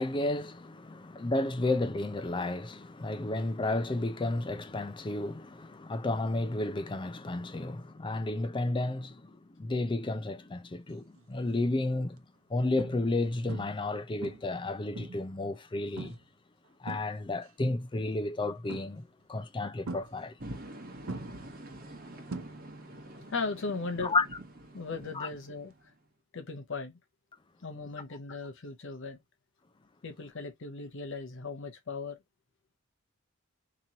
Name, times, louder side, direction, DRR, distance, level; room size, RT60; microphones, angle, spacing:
voice 1, 0.0-12.2 12.5-16.2 16.8-20.3 24.0-24.2 25.1-25.3, left 2 dB, 25° left, 0.5 m, -32 dB
sound 1, 11.2-11.5 12.1-12.2 12.8-13.2 13.5-13.9 14.2-15.4 16.0-16.3 16.6-17.5 18.7-19.2 19.9-20.7 21.1-23.0 23.2-23.6 25.7-25.8, right 3 dB, 80° right, 0.7 m, -42 dB
sound 2, 20.4-26.1, right 1 dB, 45° right, 1.1 m, -46 dB
voice 2, 23.3-24.2 24.7-25.7 26.3-27.0 27.6-29.2 30.0-32.2, left 4 dB, 65° left, 0.7 m, -37 dB
3.0 x 2.9 x 3.8 m
head